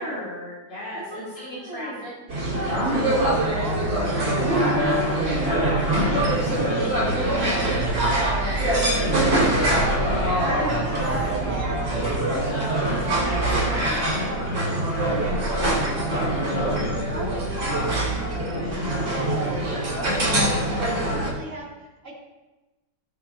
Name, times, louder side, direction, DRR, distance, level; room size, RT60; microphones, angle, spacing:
voice 1, 0.0-2.1 4.1-4.7 6.2-6.9 10.0-10.9 12.5-14.0 18.7-19.2, equal, 75° left, -10 dB, 3.9 m, -36 dB
voice 2, 0.9-2.0 2.7-12.8 14.4-22.2, right 2 dB, 45° right, -5 dB, 3.3 m, -37 dB
sound 1, 2.3-21.3, right 1 dB, 85° right, 3.7 m, -23 dB
18.0 x 7.1 x 2.8 m, 1.1 s
omnidirectional pair, 1.9 m